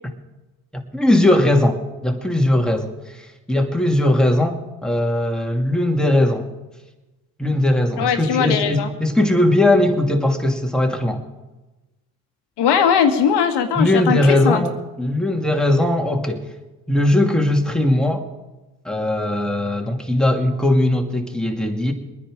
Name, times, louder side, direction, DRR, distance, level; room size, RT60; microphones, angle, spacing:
voice 1, 0.7-6.5 7.4-11.2 13.8-16.5 16.9-18.3 18.8-21.9, left 1 dB, ahead, 2 dB, 2.6 m, -19 dB
voice 2, 8.0-8.9 12.6-14.6, left 7 dB, 75° left, 6 dB, 1.8 m, -19 dB
22.0 x 10.0 x 5.1 m, 1.1 s
supercardioid pair, 55°, 41 cm